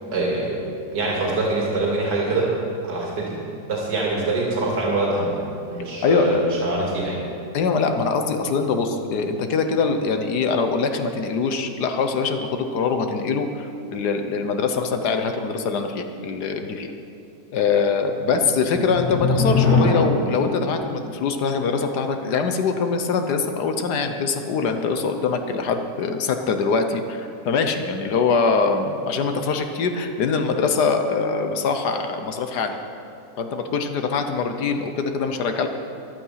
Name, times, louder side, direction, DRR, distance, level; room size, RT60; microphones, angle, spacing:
voice 1, 0.1-0.6 0.9-2.5 2.8-3.4 3.7-5.4 5.7-7.2, right 2 dB, 75° right, -3 dB, 2.9 m, -24 dB
voice 2, 6.0-6.4 7.5-16.9 17.5-32.8 33.4-35.7, left 5 dB, 70° left, 6 dB, 1.4 m, -23 dB
timp rolls, 8.6-10.3 10.7-10.8 18.1-20.7, left 3 dB, 20° left, 3.4 m, -24 dB
14.0 x 11.5 x 5.7 m, 2.5 s
omnidirectional pair, 1.9 m